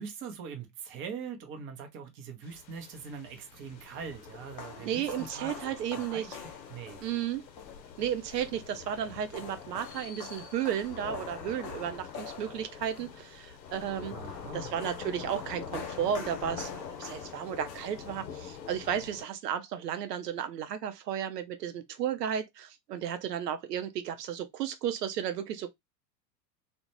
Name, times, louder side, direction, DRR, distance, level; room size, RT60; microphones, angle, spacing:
voice 1, 0.0-6.3 6.7-7.0 14.1-14.7, right 6 dB, 25° right, 0.5 m, -42 dB
sound 1, 2.4-19.2, left 7 dB, 85° left, 0.6 m, -46 dB
sound 2, 3.5-18.6, left 6 dB, 30° left, 0.3 m, -46 dB
voice 2, 4.8-6.4 7.0-7.4 8.0-14.1 14.5-25.7, right 9 dB, 75° right, 0.5 m, -33 dB
2.3 x 2.1 x 2.9 m
figure-of-eight pair, 90°, 49 cm